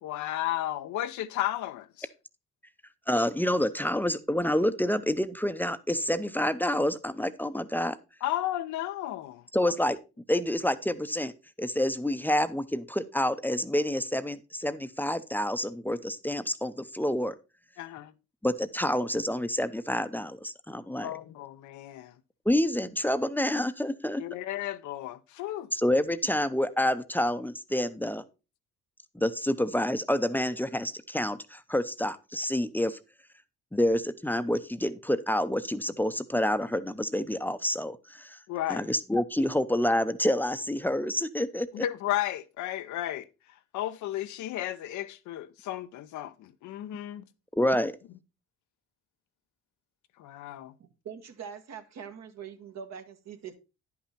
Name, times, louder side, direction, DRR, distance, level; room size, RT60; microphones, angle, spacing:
voice 1, 0.0-2.1 8.2-9.7 17.8-18.1 21.0-22.2 24.2-25.7 38.5-38.9 41.7-47.2 50.2-50.7, left 13 dB, 75° left, 0.7 m, -34 dB
voice 2, 3.1-8.0 9.5-10.0 10.3-11.3 11.6-17.3 18.4-21.1 22.5-24.2 25.7-28.2 29.1-33.0 33.7-38.4 38.7-41.8 47.6-47.9, left 1 dB, 5° left, 0.7 m, -28 dB
voice 3, 50.8-53.6, right 7 dB, 65° right, 1.5 m, -43 dB
10.0 x 5.8 x 4.2 m
supercardioid pair, 65°, 29 cm